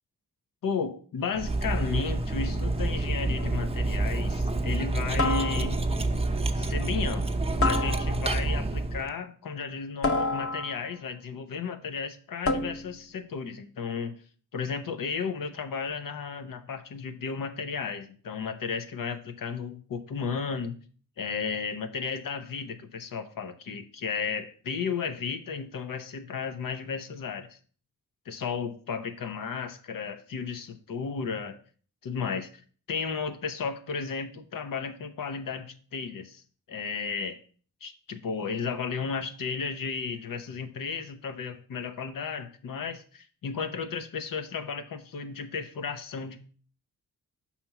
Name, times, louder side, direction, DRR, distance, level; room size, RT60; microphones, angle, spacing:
voice 1, 0.6-5.8 6.6-7.3 7.6-14.1 14.5-20.7 21.2-27.6 28.3-31.6 32.0-32.5 32.9-36.4 36.7-37.4 37.8-46.4, left 5 dB, 75° left, 8 dB, 0.9 m, -34 dB
Cutlery silverware, 1.4-9.1, right 2 dB, 20° right, 0.7 m, -28 dB
sound 1, 3.4-3.7 5.2-6.0 7.6-8.4 10.0-11.0 12.4-13.0, left 3 dB, 40° left, 0.7 m, -29 dB
5.7 x 4.3 x 5.9 m, 0.43 s
cardioid pair, 65°, 33 cm